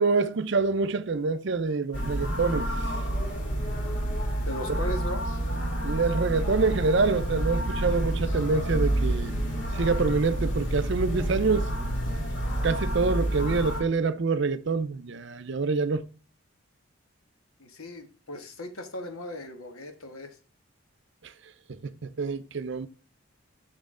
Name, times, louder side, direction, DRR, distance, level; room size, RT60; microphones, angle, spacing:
voice 1, 0.0-2.7 4.7-4.8 5.8-9.4 9.7-11.7 12.6-16.1 21.7-22.9, right 4 dB, 55° right, 0.6 m, -26 dB
sound 1, 1.9-13.8, right 1 dB, 55° left, 2.4 m, -29 dB
voice 2, 4.4-5.2 8.0-8.2 17.6-20.4, left 1 dB, 90° left, 1.5 m, -37 dB
6.2 x 6.2 x 3.7 m
head